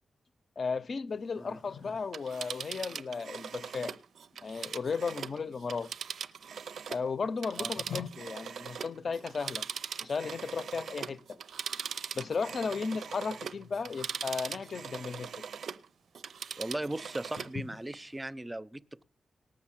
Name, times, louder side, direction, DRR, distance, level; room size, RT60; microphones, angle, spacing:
voice 1, 0.6-4.0 4.4-5.9 6.9-9.7 10.0-11.4 12.1-15.4 17.6-17.7, left 5 dB, 55° left, 0.7 m, -35 dB
Telephone, 2.0-7.1 7.4-15.8 16.1-17.6 17.9-18.0, right 7 dB, 85° right, 0.5 m, -41 dB
voice 2, 16.6-19.0, right 1 dB, 15° right, 0.5 m, -38 dB
18.5 x 6.9 x 7.3 m
wide cardioid pair, 100°, 0 cm